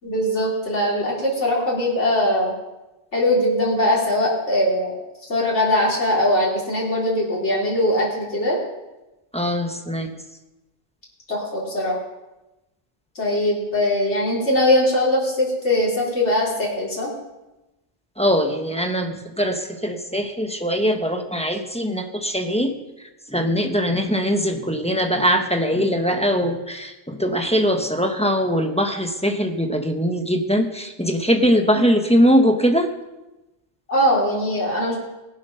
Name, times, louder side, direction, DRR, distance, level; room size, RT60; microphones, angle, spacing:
voice 1, 0.0-2.5 3.1-5.0 5.3-8.6 11.3-12.0 13.1-17.1 33.9-35.0, left 1 dB, 80° left, -5 dB, 3.3 m, -21 dB
voice 2, 9.3-10.1 18.2-32.9, equal, 5° left, 4 dB, 1.0 m, -21 dB
19.5 x 7.5 x 5.7 m, 1.0 s
omnidirectional pair, 1.2 m